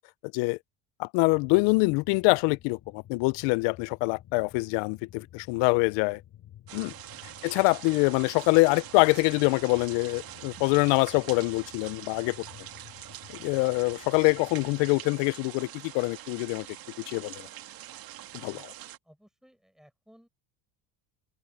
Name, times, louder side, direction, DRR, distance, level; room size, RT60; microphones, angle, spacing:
voice 1, 1.0-6.2 6.7-6.9 7.4-12.4 13.4-16.7 17.1-17.5 18.4-18.6, left 27 dB, 75° left, 0.6 m, -25 dB
sound 1, 1.3-15.1, left 12 dB, 50° left, 4.6 m, -53 dB
sound 2, 6.7-19.0, right 13 dB, 50° right, 2.3 m, -44 dB
voice 2, 18.3-18.7 19.0-20.3, equal, ahead, 4.6 m, -59 dB
cardioid pair, 135°, 44 cm